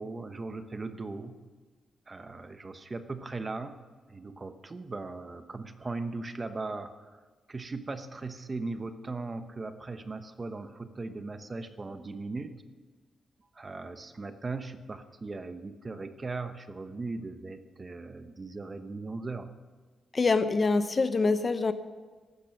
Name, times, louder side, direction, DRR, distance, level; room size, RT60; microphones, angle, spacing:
voice 1, 0.0-1.3 2.1-3.7 4.1-7.2 7.5-12.5 13.5-19.5, right 3 dB, 25° right, 9 dB, 1.0 m, -38 dB
voice 2, 20.1-21.7, left 3 dB, 30° left, 11 dB, 0.8 m, -25 dB
15.0 x 12.5 x 5.9 m, 1.4 s
wide cardioid pair, 140°, 0 cm